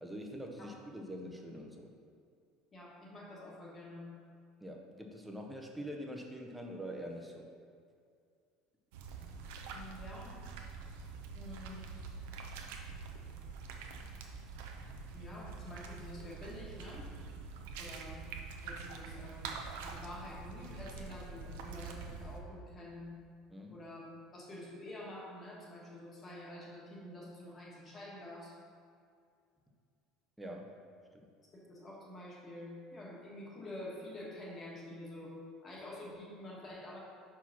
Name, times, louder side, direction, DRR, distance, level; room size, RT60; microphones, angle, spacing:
voice 1, 0.0-1.9 4.6-7.4 23.5-23.8 30.4-30.8 31.1-31.3, equal, 5° right, 1 dB, 0.6 m, -44 dB
voice 2, 2.7-4.0 9.7-10.4 11.3-11.8 15.1-17.1 17.8-18.2 18.6-19.5 19.8-23.1 23.7-24.0 24.3-28.5 31.5-35.3 35.6-37.0, left 1 dB, 20° left, -4 dB, 1.3 m, -48 dB
sound 1, 8.9-22.4, right 4 dB, 85° right, 0.7 m, -45 dB
5.8 x 4.7 x 5.8 m, 2.3 s
cardioid pair, 180°, 0 cm